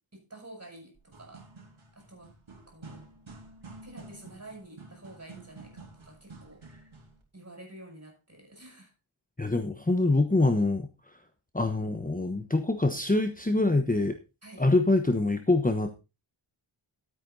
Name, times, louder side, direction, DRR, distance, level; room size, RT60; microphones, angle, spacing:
voice 1, 0.0-1.4 1.9-2.3 2.7-3.0 3.8-6.6 7.3-8.9 14.4-14.7, right 2 dB, 30° right, 2 dB, 7.5 m, -49 dB
sound 1, 1.0-7.2, right 3 dB, 70° right, 4.0 m, -49 dB
voice 2, 9.4-10.9 11.5-14.2 14.6-15.9, left 2 dB, 15° left, 7 dB, 1.1 m, -25 dB
12.5 x 8.9 x 4.1 m, 0.29 s
wide cardioid pair, 70°, 49 cm